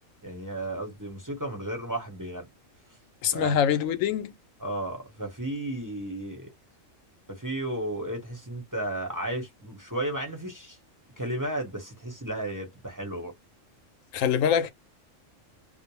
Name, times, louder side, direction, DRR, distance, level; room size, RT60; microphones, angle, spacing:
voice 1, 0.2-2.5 3.3-3.6 4.6-6.5 7.3-10.8 11.2-13.3, right 1 dB, 15° right, 0.8 m, -33 dB
voice 2, 3.2-4.3 14.1-14.7, left 8 dB, 90° left, 1.0 m, -24 dB
2.5 x 2.0 x 2.9 m
omnidirectional pair, 1.3 m